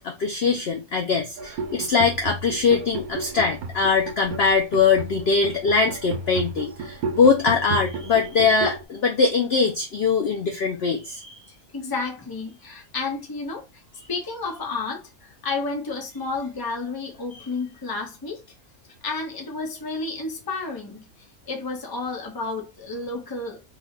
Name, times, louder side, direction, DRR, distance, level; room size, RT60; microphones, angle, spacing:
voice 1, 0.0-11.4, left 5 dB, 60° left, 0.7 m, -22 dB
sound 1, 1.4-8.8, right 3 dB, 85° right, 1.2 m, -33 dB
voice 2, 11.7-13.8 14.1-18.4 19.0-23.6, left 3 dB, 20° left, 0.6 m, -31 dB
3.3 x 2.2 x 3.6 m
omnidirectional pair, 1.5 m